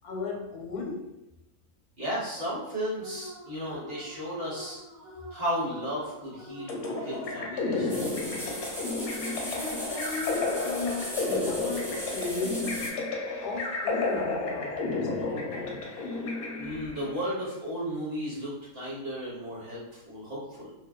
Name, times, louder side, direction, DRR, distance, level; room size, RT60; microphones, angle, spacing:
voice 1, 0.0-1.2 9.4-13.1 13.4-16.1, left 4 dB, 90° left, -1 dB, 1.1 m, -36 dB
voice 2, 2.0-4.8 5.3-8.2 16.6-20.7, equal, 50° right, -7 dB, 0.9 m, -34 dB
sound 1, 3.0-12.4, equal, 85° right, 0.4 m, -46 dB
sound 2, 6.7-17.1, left 3 dB, 65° left, 0.7 m, -32 dB
sound 3, 7.9-12.9, equal, 5° right, 0.3 m, -38 dB
2.6 x 2.2 x 2.3 m, 0.92 s
omnidirectional pair, 1.6 m